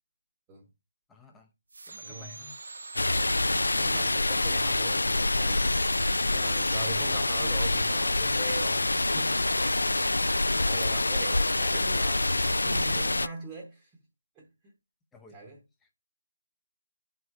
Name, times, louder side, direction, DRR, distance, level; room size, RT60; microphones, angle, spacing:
voice 1, 1.1-1.5 1.8-2.6 15.1-15.4, left 3 dB, 5° left, 0.7 m, -54 dB
sound 1, 1.7-4.3 5.0-7.0, right 3 dB, 65° right, 0.5 m, -44 dB
voice 2, 2.0-2.4 3.8-5.7 6.3-9.9 10.5-13.9 14.3-14.7 15.3-15.6, right 2 dB, 10° right, 1.0 m, -41 dB
sound 2, 3.0-13.3, left 2 dB, 85° left, 0.3 m, -26 dB
11.0 x 4.7 x 2.6 m
figure-of-eight pair, 165°, 0 cm